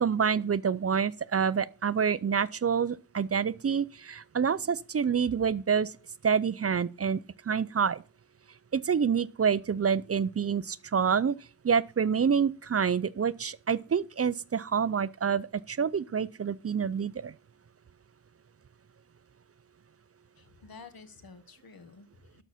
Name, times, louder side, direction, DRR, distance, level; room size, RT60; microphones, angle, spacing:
voice 1, 0.0-5.9 6.2-7.2 7.5-8.0 8.7-11.3 11.6-17.3, right 6 dB, 45° right, 0.4 m, -27 dB
voice 2, 20.4-22.4, left 4 dB, 85° left, 1.3 m, -51 dB
12.0 x 6.1 x 4.2 m
wide cardioid pair, 75°, 35 cm